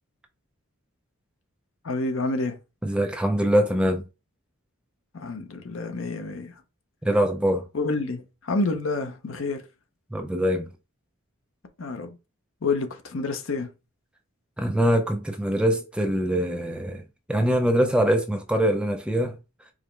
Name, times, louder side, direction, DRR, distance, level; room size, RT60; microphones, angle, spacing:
voice 1, 1.8-2.6 5.1-6.5 7.7-9.6 11.8-12.1 12.6-13.7, left 3 dB, 70° left, 0.7 m, -28 dB
voice 2, 2.8-4.0 7.0-7.7 10.1-10.7 14.6-17.0 17.3-19.4, equal, 5° right, 0.3 m, -23 dB
4.9 x 2.1 x 3.2 m
head